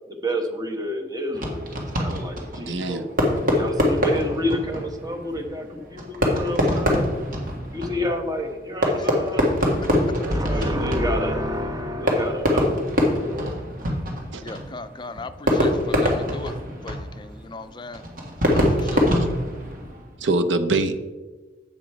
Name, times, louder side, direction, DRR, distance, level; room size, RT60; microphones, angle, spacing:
voice 1, 0.1-7.0 7.7-9.5 9.8-13.5, equal, 20° right, 4 dB, 1.1 m, -29 dB
Fireworks, 1.3-20.2, left 1 dB, 50° right, 1.8 m, -25 dB
voice 2, 2.6-3.0 14.3-14.4 20.2-20.9, right 2 dB, 85° right, 8 dB, 0.8 m, -23 dB
voice 3, 8.9-9.4 10.5-10.7 14.4-18.0 18.5-19.1, left 3 dB, 25° left, 10 dB, 0.4 m, -38 dB
8.4 x 7.2 x 4.7 m, 1.3 s
head